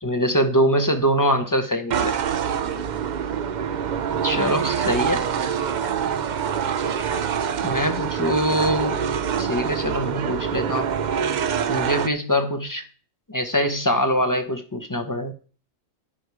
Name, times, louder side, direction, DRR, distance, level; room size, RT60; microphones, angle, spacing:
voice 1, 0.0-2.1 4.2-5.3 7.6-9.0 9.4-10.9 11.7-12.8 13.3-15.3, equal, 15° left, 6 dB, 1.0 m, -23 dB
sound 1, 1.9-12.1, right 8 dB, 55° right, 0.5 m, -25 dB
voice 2, 2.6-3.1 4.2-4.6 5.0-6.2, right 4 dB, 75° right, 4 dB, 2.0 m, -40 dB
15.0 x 5.2 x 4.8 m, 0.39 s
omnidirectional pair, 1.3 m